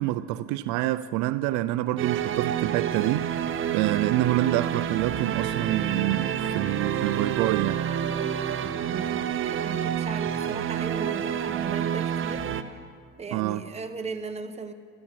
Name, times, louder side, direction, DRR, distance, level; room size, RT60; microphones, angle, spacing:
voice 1, 0.0-3.3 3.7-7.8 13.3-13.6, right 16 dB, 75° right, 0.5 m, -27 dB
sound 1, 2.0-12.6, right 9 dB, 45° right, 0.9 m, -28 dB
voice 2, 8.6-12.8 13.2-14.7, right 4 dB, 20° right, 1.1 m, -37 dB
15.5 x 13.5 x 5.9 m
cardioid pair, 110°, 30 cm